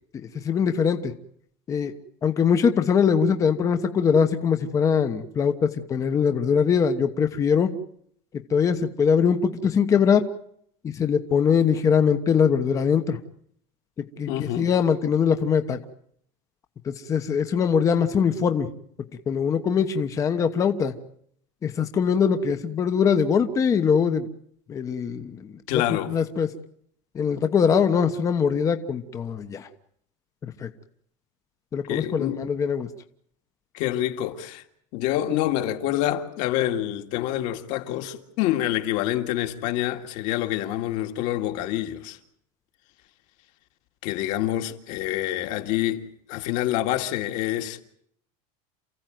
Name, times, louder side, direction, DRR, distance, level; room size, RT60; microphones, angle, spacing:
voice 1, 0.1-1.1 1.7-1.9 2.2-7.7 8.5-10.2 10.8-13.2 14.2-15.8 16.8-18.7 19.3-20.9 21.6-24.3 24.7-25.8 26.1-26.5 27.1-29.7 30.4-30.7 31.7-32.9, left 6 dB, 20° left, 1.1 m, -22 dB
voice 2, 14.3-14.7 25.7-26.2 31.9-32.4 33.7-34.6 34.9-42.2 44.0-47.8, left 13 dB, 50° left, 2.2 m, -27 dB
28.5 x 15.5 x 9.3 m
supercardioid pair, 165°, 17 cm